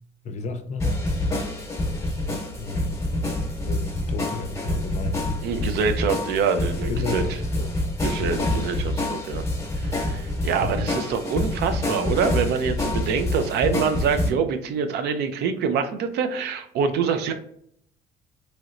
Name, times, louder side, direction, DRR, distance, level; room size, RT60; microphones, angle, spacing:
voice 1, 0.2-1.0 2.6-3.0 3.6-5.4 6.9-7.7 8.2-8.5 10.6-10.8, left 3 dB, 45° left, 0.5 m, -33 dB
sound 1, 0.8-14.3, left 1 dB, 15° left, 0.8 m, -27 dB
voice 2, 5.4-7.2 8.0-9.4 9.8-17.3, right 6 dB, 75° right, 0.5 m, -25 dB
3.1 x 2.9 x 2.5 m
cardioid pair, 110°, 17 cm